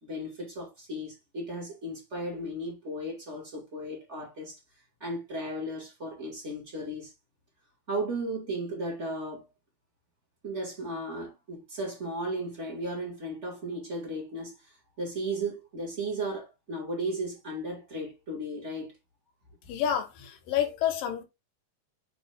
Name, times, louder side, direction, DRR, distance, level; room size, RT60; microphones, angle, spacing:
voice 1, 0.0-4.6 5.0-7.1 7.9-9.4 10.4-14.6 15.0-18.9, right 1 dB, 25° right, 1.9 m, -35 dB
voice 2, 19.7-21.2, left 9 dB, 80° left, 2.8 m, -29 dB
8.3 x 3.3 x 3.6 m
omnidirectional pair, 4.0 m